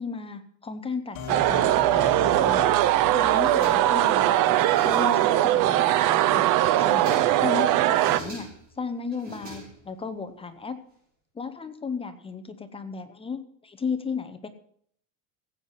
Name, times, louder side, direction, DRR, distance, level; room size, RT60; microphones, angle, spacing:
voice 1, 0.0-2.7 3.1-6.5 6.8-7.1 7.4-8.5 8.8-10.8 11.3-14.5, left 5 dB, 15° left, 8 dB, 0.6 m, -35 dB
sound 1, 1.2-4.7, left 6 dB, 50° left, 2.2 m, -39 dB
sound 2, 1.3-8.2, right 14 dB, 45° right, 0.6 m, -21 dB
sound 3, 3.2-4.1 4.5-5.3 5.7-6.4 6.7-7.5 7.8-8.7 9.1-10.1, right 1 dB, 20° right, 5.5 m, -43 dB
16.0 x 8.3 x 5.5 m, 0.65 s
cardioid pair, 165°, 45 cm